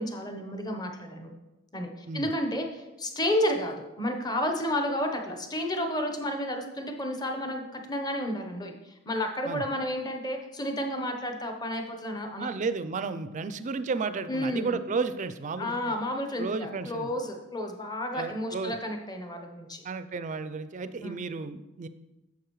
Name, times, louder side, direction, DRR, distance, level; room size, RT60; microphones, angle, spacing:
voice 1, 0.0-1.3 1.7-12.5 14.3-14.8 15.6-19.8 21.0-21.2, left 1 dB, 20° left, 4 dB, 0.8 m, -31 dB
voice 2, 12.4-15.9 16.4-17.1 18.1-18.8 19.8-21.9, right 4 dB, 35° right, 12 dB, 0.4 m, -33 dB
9.6 x 7.0 x 3.1 m, 1.0 s
head